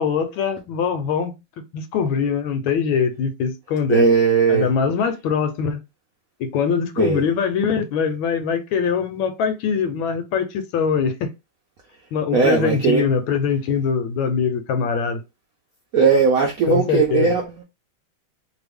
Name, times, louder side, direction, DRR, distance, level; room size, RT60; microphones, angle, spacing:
voice 1, 0.0-1.3 1.7-4.0 4.5-5.8 6.4-11.3 12.1-15.2 16.7-17.3, left 6 dB, 80° left, 1.4 m, -22 dB
voice 2, 3.9-4.7 7.0-7.2 12.3-13.0 15.9-17.6, right 5 dB, 75° right, 0.8 m, -18 dB
3.2 x 2.3 x 3.4 m
omnidirectional pair, 2.2 m